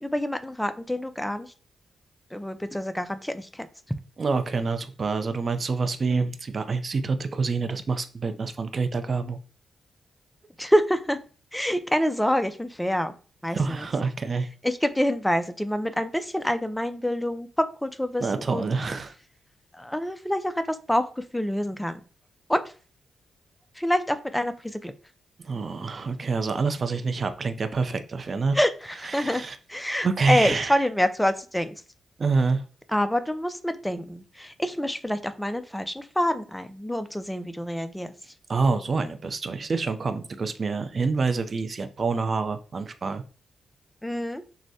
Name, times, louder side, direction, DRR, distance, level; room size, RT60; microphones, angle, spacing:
voice 1, 0.0-1.5 2.3-3.7 6.1-6.2 10.6-11.2 11.5-13.1 13.4-13.9 14.6-18.8 19.7-22.0 22.5-22.6 23.8-24.9 28.5-29.4 29.7-31.7 32.9-38.1 44.0-44.4, equal, 5° left, 11 dB, 0.4 m, -27 dB
voice 2, 4.2-9.4 13.5-14.5 18.2-19.1 25.4-28.6 29.1-29.6 30.0-30.8 32.2-32.6 38.5-43.2, right 4 dB, 45° right, 10 dB, 0.5 m, -27 dB
6.2 x 2.1 x 2.7 m, 0.38 s
cardioid pair, 75°, 0 cm